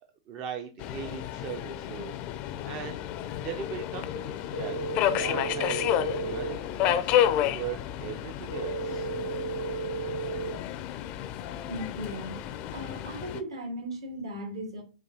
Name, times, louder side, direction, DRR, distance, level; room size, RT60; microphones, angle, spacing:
voice 1, 0.0-4.8 5.1-9.1, right 7 dB, 35° right, 0.4 m, -40 dB
Subway metro underground, 0.8-13.4, left 11 dB, 35° left, 0.4 m, -31 dB
sound 1, 4.5-6.5 8.5-10.5, right 4 dB, 80° right, 0.9 m, -33 dB
voice 2, 11.7-12.4 12.7-14.8, equal, 65° right, 1.3 m, -37 dB
5.8 x 2.3 x 2.7 m
figure-of-eight pair, 105°, 3 cm